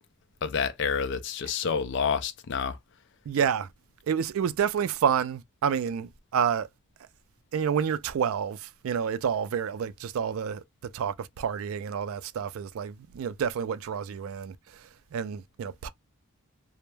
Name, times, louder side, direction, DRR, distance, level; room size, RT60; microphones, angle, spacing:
voice 1, 0.4-2.8, left 6 dB, 55° left, 0.4 m, -28 dB
voice 2, 3.3-3.7 4.1-6.7 7.5-10.6 10.9-15.9, right 7 dB, 70° right, 0.3 m, -29 dB
2.2 x 2.0 x 3.1 m
head